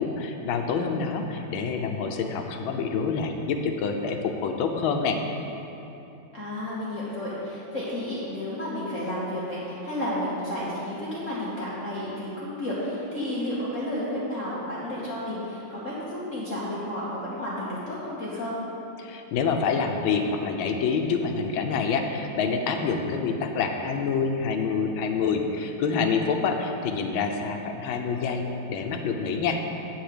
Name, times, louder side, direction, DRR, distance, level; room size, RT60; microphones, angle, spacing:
voice 1, 0.0-5.2 19.0-28.4 28.7-29.6, left 5 dB, 90° left, 4 dB, 1.6 m, -27 dB
voice 2, 6.3-18.6, left 1 dB, 40° left, -8 dB, 1.7 m, -32 dB
9.0 x 8.3 x 5.0 m, 2.9 s
omnidirectional pair, 2.2 m